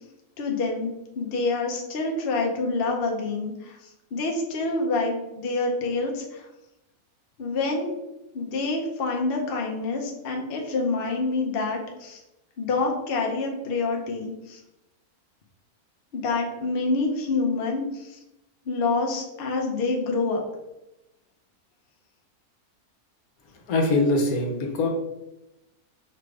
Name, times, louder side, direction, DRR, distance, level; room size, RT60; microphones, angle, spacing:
voice 1, 0.4-3.8 4.1-6.4 7.4-8.0 8.3-12.2 12.6-14.6 16.1-18.2 18.7-20.4, left 3 dB, 50° left, 1 dB, 0.7 m, -27 dB
voice 2, 23.7-24.9, left 2 dB, 75° left, 1 dB, 1.2 m, -22 dB
4.9 x 2.4 x 3.2 m, 0.92 s
omnidirectional pair, 1.5 m